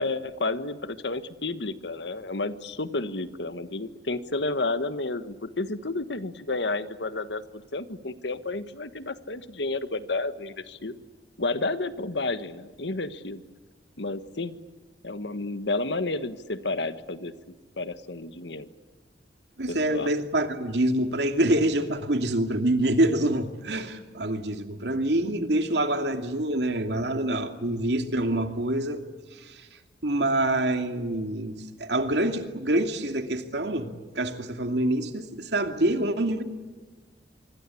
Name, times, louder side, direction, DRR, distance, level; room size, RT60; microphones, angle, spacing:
voice 1, 0.0-10.9 11.4-13.4 14.0-14.6 15.0-17.3 17.8-18.7 19.7-20.1, left 2 dB, 85° left, 12 dB, 1.5 m, -31 dB
voice 2, 19.6-29.0 29.3-29.6 30.0-36.4, right 1 dB, 75° right, 6 dB, 2.6 m, -26 dB
25.5 x 24.5 x 8.6 m, 1.3 s
head